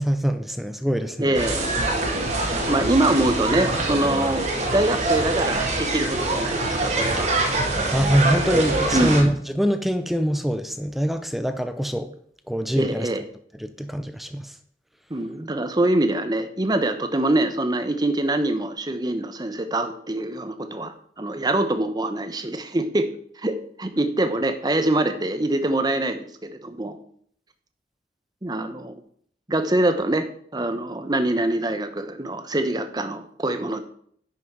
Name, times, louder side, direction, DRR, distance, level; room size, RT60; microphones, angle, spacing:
voice 1, 0.0-1.4 7.9-12.1 12.5-13.1 13.6-14.5, equal, ahead, 9 dB, 0.5 m, -24 dB
voice 2, 1.2-1.7 2.7-7.3 8.9-9.2 12.7-13.2 15.1-23.1 23.4-27.0 28.4-29.0 29.5-30.3 30.5-33.8, right 1 dB, 25° right, 9 dB, 0.8 m, -24 dB
sound 1, 1.3-9.2, right 2 dB, 40° right, 1.8 m, -24 dB
10.5 x 6.1 x 4.6 m, 0.63 s
head